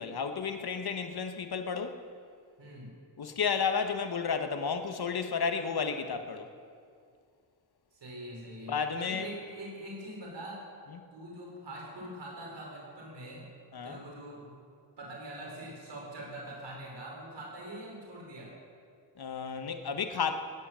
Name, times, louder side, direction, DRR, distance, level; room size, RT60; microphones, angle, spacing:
voice 1, 0.0-2.0 3.2-6.5 8.7-9.3 10.9-11.0 13.7-14.0 19.2-20.4, left 6 dB, 65° left, 7 dB, 1.3 m, -32 dB
voice 2, 2.6-2.9 7.9-10.7 11.1-13.5 13.8-14.5 15.0-18.5, right 1 dB, 85° right, -3 dB, 4.8 m, -43 dB
16.0 x 10.0 x 7.5 m, 2.2 s
cardioid pair, 70°, 41 cm